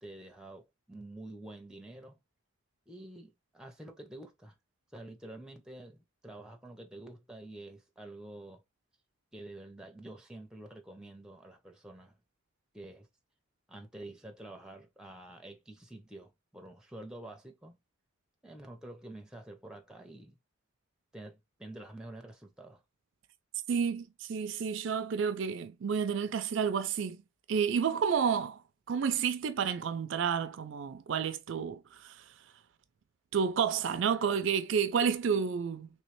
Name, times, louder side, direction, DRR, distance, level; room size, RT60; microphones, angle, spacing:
voice 1, 0.0-2.2 2.9-4.5 4.9-8.6 9.3-12.2 12.7-13.1 13.7-17.8 18.4-20.4 21.1-22.8, right 1 dB, 5° right, 0.6 m, -48 dB
voice 2, 23.7-27.2 27.5-28.6 28.9-32.1 33.3-35.9, right 6 dB, 60° right, 0.4 m, -30 dB
3.2 x 3.1 x 3.1 m
head